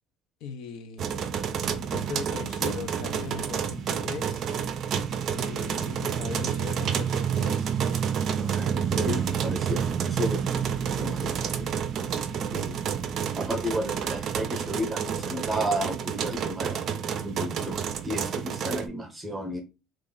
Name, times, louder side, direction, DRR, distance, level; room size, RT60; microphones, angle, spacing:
voice 1, 0.4-1.2 1.9-4.5 5.3-7.7 12.4-12.8, left 6 dB, 70° left, 0.6 m, -39 dB
sound 1, 1.0-18.9, right 8 dB, 45° right, 0.4 m, -29 dB
voice 2, 8.4-11.7 12.5-12.8 13.3-16.8 17.2-19.6, equal, 10° right, 0.8 m, -33 dB
3.1 x 2.4 x 3.7 m
cardioid pair, 140°, 0 cm